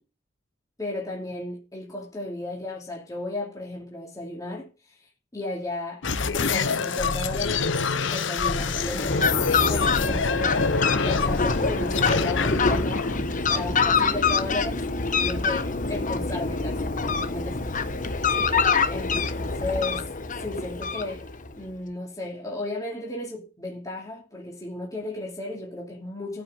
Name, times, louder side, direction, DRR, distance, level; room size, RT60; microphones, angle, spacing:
voice 1, 0.8-16.9 17.2-17.6 17.9-18.0 18.9-19.1 19.4-20.1 20.4-21.3 21.6-26.4, left 2 dB, 20° left, 2.9 m, -34 dB
sound 1, 6.0-14.2, left 5 dB, 75° left, 1.0 m, -27 dB
Fowl, 8.5-21.5, left 4 dB, 45° left, 1.2 m, -25 dB
14.5 x 6.1 x 8.1 m
head